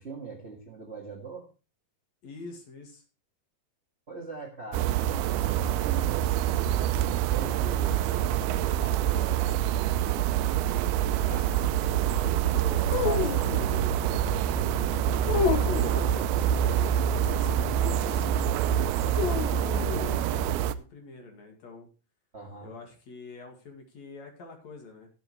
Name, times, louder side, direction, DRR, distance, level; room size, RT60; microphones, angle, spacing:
voice 1, 0.0-1.5 4.1-6.5 7.0-9.8 22.3-22.7, right 4 dB, 40° right, 1 dB, 0.9 m, -42 dB
voice 2, 2.2-3.0 11.2-18.3 18.9-21.9 22.6-25.1, left 3 dB, 50° left, 3 dB, 2.9 m, -46 dB
sound 1, 4.7-20.7, right 10 dB, 80° right, 2.5 m, -26 dB
sound 2, 12.9-13.9 15.2-16.1 19.1-20.2, left 7 dB, 85° left, 1.5 m, -30 dB
17.0 x 8.1 x 3.1 m, 0.33 s
omnidirectional pair, 4.5 m